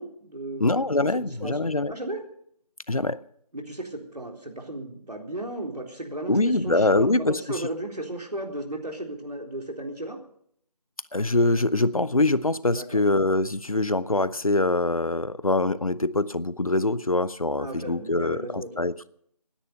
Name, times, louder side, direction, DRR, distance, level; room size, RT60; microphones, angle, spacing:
voice 1, 0.0-0.9 1.1-2.2 3.5-10.2 12.7-13.0 17.6-18.9, right 1 dB, 75° right, 3.8 m, -35 dB
voice 2, 0.6-1.9 2.9-3.2 6.3-7.7 11.1-19.1, left 2 dB, 60° left, 0.7 m, -24 dB
18.0 x 10.0 x 6.8 m
figure-of-eight pair, 175°, 21 cm